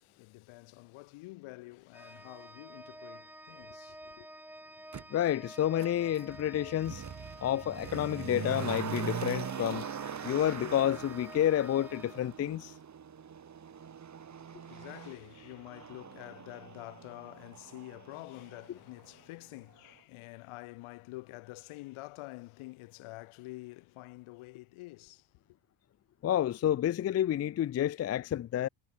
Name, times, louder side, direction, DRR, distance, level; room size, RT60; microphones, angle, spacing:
voice 1, 0.0-4.3 14.4-25.3, left 22 dB, 75° left, 4.1 m, -48 dB
Organ, 1.9-12.8, right 1 dB, 5° right, 3.7 m, -50 dB
Motor vehicle (road), 4.9-5.0 5.8-18.7 19.0-19.1, right 7 dB, 35° right, 2.9 m, -42 dB
voice 2, 5.1-7.0 7.4-9.9 10.2-12.7 26.2-28.7, left 11 dB, 30° left, 0.5 m, -29 dB
cardioid pair, 100°, 49 cm